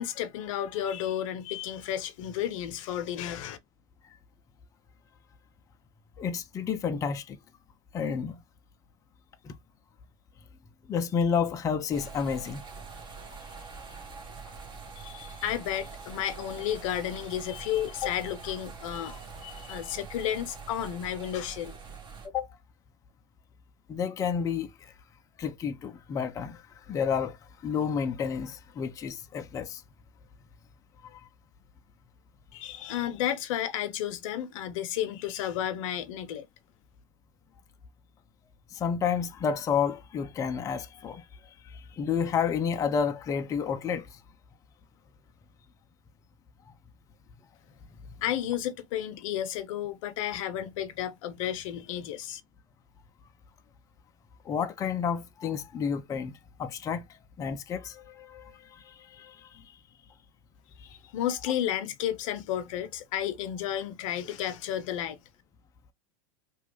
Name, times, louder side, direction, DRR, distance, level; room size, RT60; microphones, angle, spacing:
voice 1, 0.0-3.6 15.0-21.8 32.5-36.4 48.2-52.4 61.1-65.2, left 11 dB, 65° left, 0.6 m, -32 dB
voice 2, 6.2-7.4 7.9-8.4 9.4-9.5 10.9-12.6 18.0-18.1 22.2-22.5 23.9-24.9 25.4-26.6 26.9-27.4 27.6-29.8 31.0-31.2 38.7-41.2 41.7-44.2 54.5-56.3 56.6-57.0 57.4-59.7 60.8-60.9, left 6 dB, 20° left, 0.4 m, -30 dB
sound 1, 11.9-22.3, right 5 dB, 25° right, 1.0 m, -44 dB
2.9 x 2.3 x 3.0 m
hypercardioid pair, 110°, 18 cm